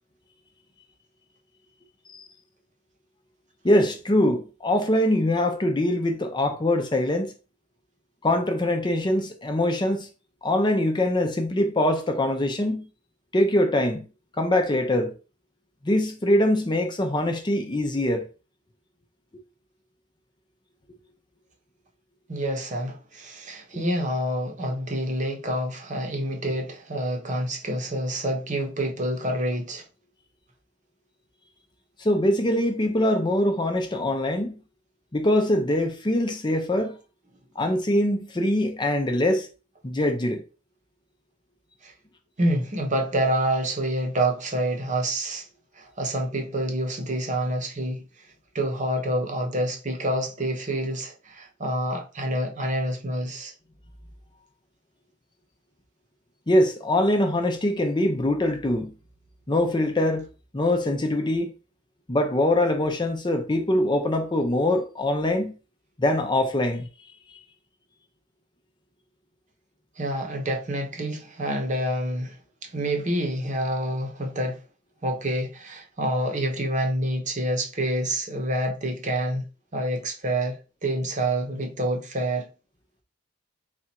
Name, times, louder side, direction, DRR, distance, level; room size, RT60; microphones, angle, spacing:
voice 1, 3.6-7.3 8.2-10.1 10.4-12.9 13.3-14.0 14.4-15.1 15.8-18.3 32.0-34.5 35.1-37.0 37.6-39.5 39.8-40.4 56.5-58.9 59.5-60.3 60.5-61.5 62.1-65.5 66.0-66.9, left 1 dB, 25° left, 0.6 m, -23 dB
voice 2, 22.3-29.9 41.8-41.9 42.4-45.4 45.8-48.0 48.5-53.5 70.0-72.4 72.6-74.6 75.0-82.5, right 1 dB, 40° right, 0.9 m, -27 dB
4.1 x 2.4 x 4.3 m
head